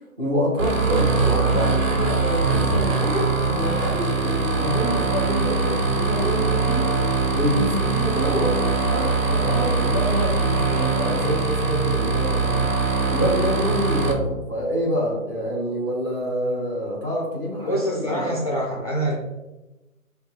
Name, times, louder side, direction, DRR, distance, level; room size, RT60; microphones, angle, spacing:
voice 1, 0.2-6.9 7.3-8.6 8.9-12.7 13.1-18.4, equal, 15° right, -3 dB, 0.7 m, -26 dB
sound 1, 0.6-14.1, right 4 dB, 65° right, 1.2 m, -22 dB
voice 2, 17.7-19.2, right 1 dB, 30° left, -2 dB, 0.5 m, -25 dB
5.3 x 2.1 x 4.4 m, 1.0 s
figure-of-eight pair, 155°, 42 cm